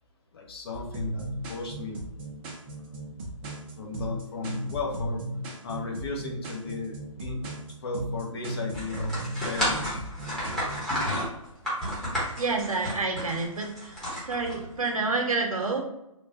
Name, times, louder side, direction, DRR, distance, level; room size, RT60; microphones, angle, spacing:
voice 1, 0.3-2.0 3.8-5.2 5.6-7.4 7.8-9.9, left 3 dB, 45° left, 0 dB, 0.8 m, -35 dB
sound 1, 0.7-11.0, right 1 dB, 20° right, 0.4 m, -36 dB
sound 2, 8.7-14.9, equal, 5° left, 0.9 m, -31 dB
voice 2, 12.4-13.9 14.3-15.8, right 3 dB, 80° right, 2 dB, 0.8 m, -28 dB
3.1 x 2.1 x 2.6 m, 0.86 s
figure-of-eight pair, 140°, 18 cm